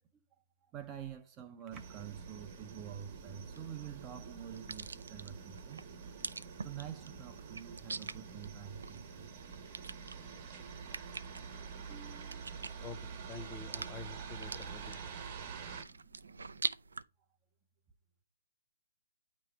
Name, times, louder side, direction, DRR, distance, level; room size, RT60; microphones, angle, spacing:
voice 1, 0.6-5.8 6.6-9.3 11.8-12.7 15.0-16.6, right 9 dB, 20° right, 0.6 m, -48 dB
sound 1, 1.7-15.8, right 6 dB, 35° right, 1.1 m, -47 dB
sound 2, 3.1-17.0, right 4 dB, 90° right, 0.4 m, -46 dB
voice 2, 12.8-15.1, left 4 dB, 15° left, 0.8 m, -48 dB
8.9 x 3.0 x 4.7 m
hypercardioid pair, 145°, 0 cm